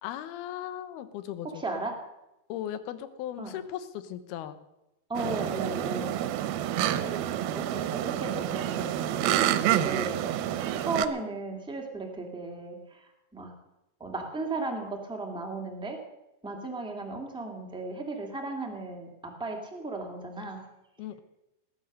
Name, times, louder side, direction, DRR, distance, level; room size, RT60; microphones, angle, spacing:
voice 1, 0.0-1.6 2.5-4.6 21.0-21.2, left 11 dB, 75° left, 12 dB, 2.8 m, -37 dB
voice 2, 1.6-2.0 3.4-3.5 5.1-6.2 6.9-7.2 7.5-10.2 10.8-12.8 13.3-13.5 14.0-16.0 16.4-20.6, right 2 dB, 5° right, 1 dB, 0.7 m, -35 dB
sound 1, 5.2-11.1, right 12 dB, 75° right, 2.4 m, -28 dB
19.0 x 9.7 x 6.5 m, 0.92 s
omnidirectional pair, 4.7 m